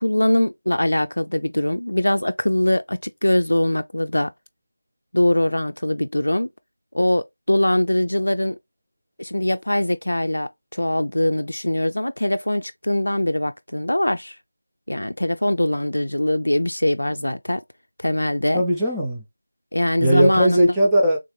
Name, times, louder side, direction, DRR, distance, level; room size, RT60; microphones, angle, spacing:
voice 1, 0.0-4.3 5.1-6.5 6.9-8.6 9.2-14.4 14.9-17.6 18.0-18.6 19.7-20.7, left 1 dB, 85° left, 0.4 m, -22 dB
voice 2, 18.5-19.2 20.0-21.2, right 1 dB, ahead, 0.5 m, -19 dB
3.5 x 2.6 x 3.2 m
figure-of-eight pair, 175°, 0 cm